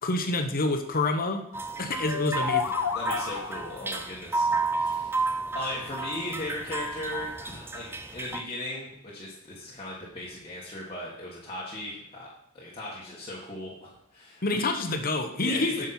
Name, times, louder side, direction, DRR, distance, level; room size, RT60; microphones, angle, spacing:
voice 1, 0.0-1.4 1.8-2.8 14.4-15.9, left 2 dB, 40° left, 5 dB, 1.0 m, -27 dB
sound 1, 1.5-8.4, right 3 dB, 10° right, 0.4 m, -32 dB
sound 2, 2.0-3.9, left 7 dB, 75° left, 0.6 m, -30 dB
voice 2, 2.9-5.2 5.5-12.3 12.5-14.6 15.4-15.9, left 1 dB, 25° left, -6 dB, 1.7 m, -37 dB
9.4 x 6.4 x 4.3 m, 0.76 s
head